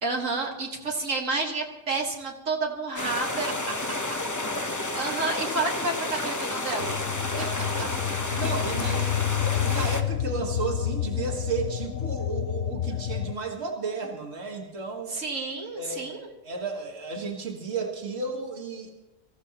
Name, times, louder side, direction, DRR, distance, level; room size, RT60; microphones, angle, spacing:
voice 1, 0.0-3.5 4.9-7.0 8.8-9.2 15.1-16.3, right 3 dB, 85° right, 0 dB, 2.0 m, -30 dB
sound 1, 3.0-10.0, left 2 dB, 20° left, 0.7 m, -31 dB
voice 2, 3.7-4.2 7.4-8.0 8.3-9.0 9.6-15.2 15.8-18.9, right 4 dB, 55° right, 0 dB, 2.0 m, -33 dB
sound 2, 6.8-13.3, left 11 dB, 75° left, 1.1 m, -29 dB
25.0 x 14.5 x 2.9 m, 1.0 s
omnidirectional pair, 1.3 m